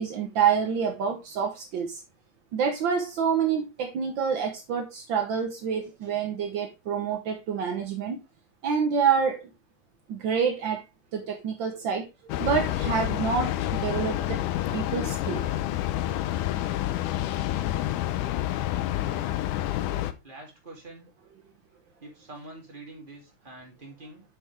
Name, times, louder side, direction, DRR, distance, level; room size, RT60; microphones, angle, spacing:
voice 1, 0.0-2.0 2.5-8.2 8.6-9.5 10.1-10.8 11.1-14.4 14.7-15.4, right 7 dB, 70° right, 1.1 m, -27 dB
Train, 12.3-20.1, left 14 dB, 90° left, 2.2 m, -28 dB
voice 2, 18.7-19.3 19.7-21.1 22.0-24.2, right 2 dB, 15° right, 2.6 m, -46 dB
8.6 x 5.4 x 3.4 m
omnidirectional pair, 3.5 m